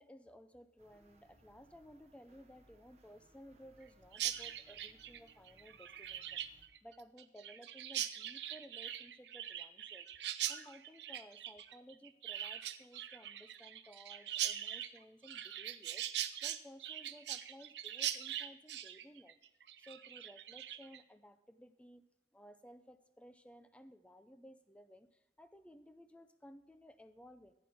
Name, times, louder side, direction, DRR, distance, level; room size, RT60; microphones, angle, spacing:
voice 1, 0.0-19.4 19.8-22.1 22.3-27.5, equal, 5° left, 10 dB, 0.5 m, -57 dB
sound 1, 0.8-6.7, right 1 dB, 35° right, 1.2 m, -68 dB
Chirp tweet, 4.1-21.0, right 11 dB, 70° right, 0.6 m, -42 dB
15.0 x 9.5 x 3.5 m, 0.93 s
head